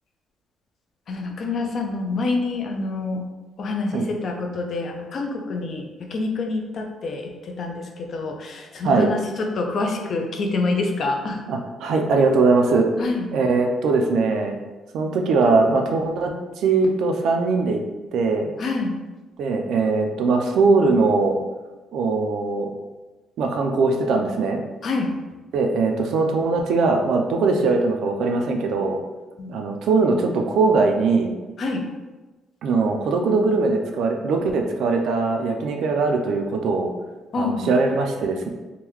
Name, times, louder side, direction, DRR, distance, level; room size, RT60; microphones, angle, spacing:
voice 1, 1.1-3.3 3.6-11.4 13.0-13.3 18.6-18.9 24.8-25.1 29.4-29.5 31.6-31.8 37.3-37.7, left 3 dB, 40° left, 3 dB, 0.4 m, -26 dB
voice 2, 11.5-12.9 13.3-14.6 14.9-16.3 16.6-17.8 18.1-18.5 19.4-21.4 21.9-22.7 23.4-24.6 25.5-29.0 29.5-31.3 32.6-36.9 37.4-38.5, right 3 dB, 65° right, 3 dB, 0.4 m, -21 dB
3.6 x 2.2 x 3.0 m, 1.2 s
cardioid pair, 155°, 0 cm